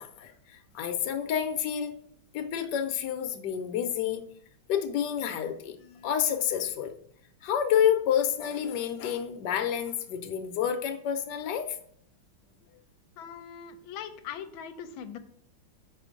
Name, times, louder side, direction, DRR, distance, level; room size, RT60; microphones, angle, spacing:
voice 1, 0.0-2.0 2.3-4.2 4.7-6.9 7.4-11.8, left 9 dB, 65° left, 7 dB, 1.3 m, -29 dB
voice 2, 13.2-15.2, left 8 dB, 85° left, 8 dB, 1.4 m, -41 dB
5.8 x 4.5 x 5.0 m, 0.66 s
omnidirectional pair, 2.2 m